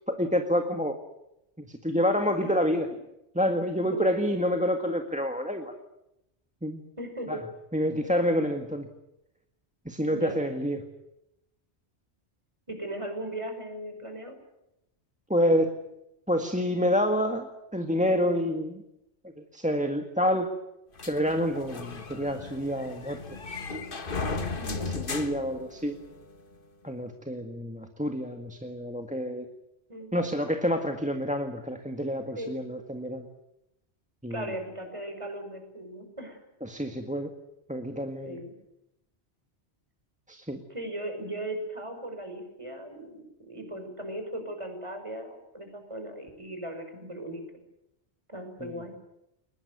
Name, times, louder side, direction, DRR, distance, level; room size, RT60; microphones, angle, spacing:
voice 1, 0.1-1.0 1.6-2.9 3.3-5.7 6.6-6.8 7.3-7.4 7.7-8.9 9.8-10.8 15.3-15.7 16.3-17.5 17.7-18.8 19.5-20.5 21.1-23.2 24.2-24.3 24.9-25.9 26.8-29.4 30.1-33.3 34.2-34.4 36.6-37.3 37.7-38.4 40.3-40.6 48.6-48.7, equal, 5° right, 5 dB, 1.6 m, -28 dB
voice 2, 7.0-7.4 10.1-10.5 12.7-14.3 24.6-25.0 29.9-30.1 32.3-32.5 34.3-36.4 38.2-38.5 40.7-47.4 48.3-48.9, right 1 dB, 25° right, 5 dB, 5.7 m, -38 dB
sound 1, 21.0-26.3, left 4 dB, 50° left, 1.6 m, -36 dB
22.0 x 20.5 x 9.5 m, 0.87 s
omnidirectional pair, 1.1 m